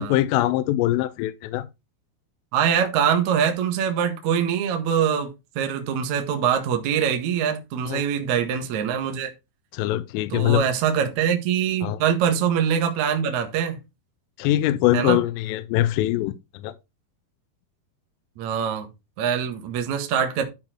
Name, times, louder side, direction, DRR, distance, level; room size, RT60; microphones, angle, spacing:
voice 1, 0.0-1.7 7.9-8.0 9.7-10.6 11.8-12.0 14.4-16.7, left 15 dB, 85° left, 3.1 m, -23 dB
voice 2, 2.5-9.3 10.3-13.8 14.9-15.2 18.4-18.9 19.2-20.4, right 8 dB, 75° right, 1.7 m, -23 dB
12.0 x 4.4 x 4.4 m
omnidirectional pair, 5.8 m